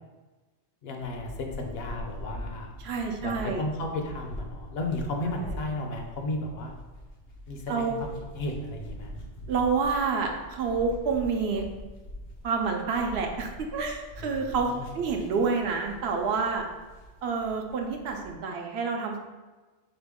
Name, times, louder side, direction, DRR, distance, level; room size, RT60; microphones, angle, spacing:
voice 1, 0.8-2.7 3.2-6.8 7.5-9.1 14.2-14.9, left 2 dB, 65° left, 2 dB, 0.8 m, -34 dB
sound 1, 1.0-18.4, equal, 90° left, 1.1 m, -43 dB
voice 2, 2.8-3.6 5.5-5.6 7.7-8.0 9.5-11.6 12.4-16.6 17.2-19.2, right 5 dB, 70° right, 2 dB, 0.8 m, -28 dB
3.9 x 2.9 x 3.5 m, 1.2 s
omnidirectional pair, 1.2 m